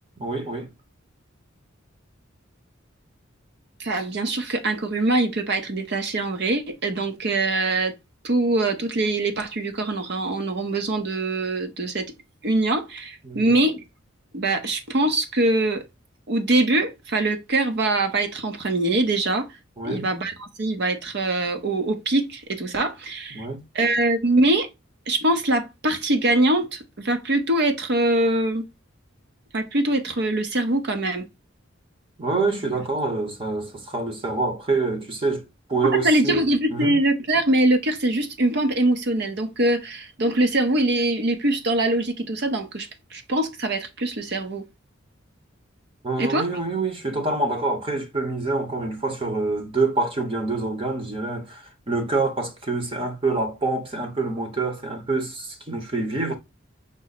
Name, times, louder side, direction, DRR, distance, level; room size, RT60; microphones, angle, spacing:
voice 1, 0.2-0.7 13.2-13.5 19.8-20.1 23.3-23.6 32.2-36.4 36.7-37.0 46.0-56.4, right 3 dB, 30° right, 0.9 m, -26 dB
voice 2, 3.8-7.9 8.2-12.1 12.4-13.8 14.3-15.8 16.3-19.5 19.8-23.5 23.7-24.7 25.1-28.6 29.5-31.2 35.8-44.6 46.2-46.5, right 2 dB, 55° right, 0.7 m, -23 dB
5.2 x 2.1 x 3.9 m
head